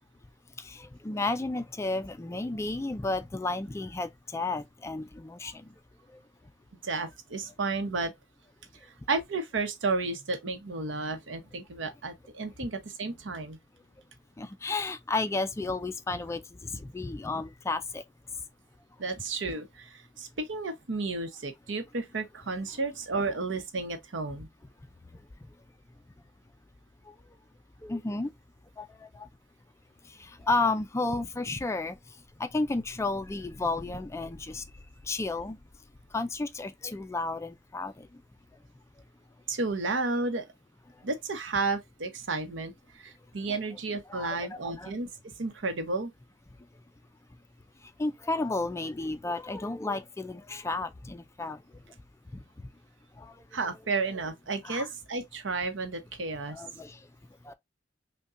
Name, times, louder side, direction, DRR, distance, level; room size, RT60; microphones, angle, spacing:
voice 1, 0.6-5.7 14.4-16.4 16.7-18.0 27.8-28.3 28.8-29.3 30.2-32.0 32.4-34.6 35.1-35.6 36.1-38.1 43.5-43.6 44.1-44.9 48.0-51.6 53.2-53.3 54.6-54.9 56.5-57.0 57.5-57.6, left 3 dB, 15° left, 0.3 m, -32 dB
voice 2, 6.8-8.1 9.1-13.6 19.0-24.5 39.5-40.4 41.0-45.1 45.4-46.1 53.5-56.6, right 3 dB, 75° right, 0.8 m, -32 dB
5.4 x 2.2 x 2.5 m
head